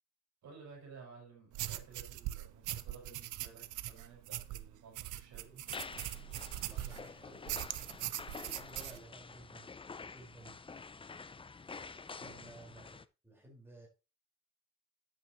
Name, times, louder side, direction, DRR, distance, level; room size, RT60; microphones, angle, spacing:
voice 1, 0.4-5.6 12.2-12.6, right 5 dB, 65° right, 0 dB, 5.7 m, -55 dB
sound 1, 1.5-7.1 7.5-9.0, right 14 dB, 80° right, 0.7 m, -41 dB
sound 2, 5.7-13.0, left 4 dB, 20° left, 0.5 m, -48 dB
voice 2, 6.6-7.6 8.4-9.7 10.1-10.6 12.4-13.9, right 2 dB, 10° right, -2 dB, 4.8 m, -55 dB
10.5 x 8.8 x 3.1 m, 0.30 s
cardioid pair, 90°, 30 cm